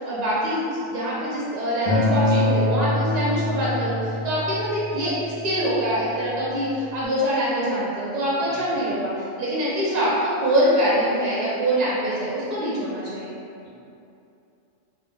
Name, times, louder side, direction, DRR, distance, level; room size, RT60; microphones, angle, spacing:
voice 1, 0.0-0.6 0.9-13.3, equal, 40° right, -8 dB, 0.8 m, -24 dB
Acoustic guitar, 1.9-7.1, left 1 dB, 10° left, 0.4 m, -25 dB
voice 2, 8.5-8.8 13.6-13.7, right 1 dB, 75° right, -6 dB, 0.9 m, -39 dB
2.5 x 2.0 x 3.5 m, 2.6 s
omnidirectional pair, 1.2 m